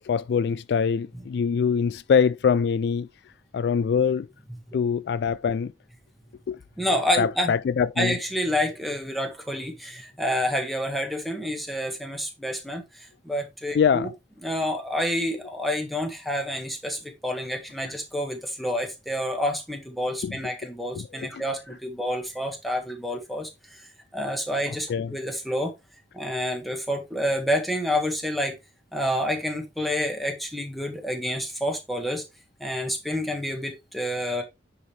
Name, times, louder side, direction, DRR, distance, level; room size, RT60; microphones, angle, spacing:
voice 1, 0.0-3.1 3.5-4.3 4.7-5.7 6.5-6.6 7.2-8.1 13.7-14.1 20.2-20.4 20.9-21.4 24.9-25.1, left 6 dB, 65° left, 0.3 m, -23 dB
voice 2, 6.8-7.5 8.0-14.1 14.4-23.8 24.1-25.7 26.1-28.6 28.9-32.2 32.6-34.4, equal, ahead, 1.8 m, -28 dB
9.6 x 4.8 x 3.3 m
head